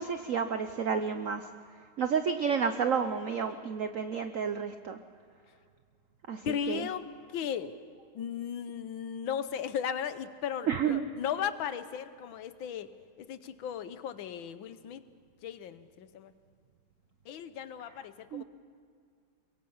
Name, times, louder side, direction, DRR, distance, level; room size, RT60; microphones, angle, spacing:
voice 1, 0.0-1.5 2.0-5.0 6.3-6.9 10.7-11.1 18.3-18.4, right 6 dB, 85° right, 8 dB, 0.7 m, -30 dB
voice 2, 6.4-7.8 8.1-12.9 13.2-15.0 15.4-16.3 17.3-18.4, left 8 dB, 70° left, 13 dB, 1.5 m, -36 dB
23.0 x 22.5 x 5.7 m, 2.2 s
omnidirectional pair, 2.4 m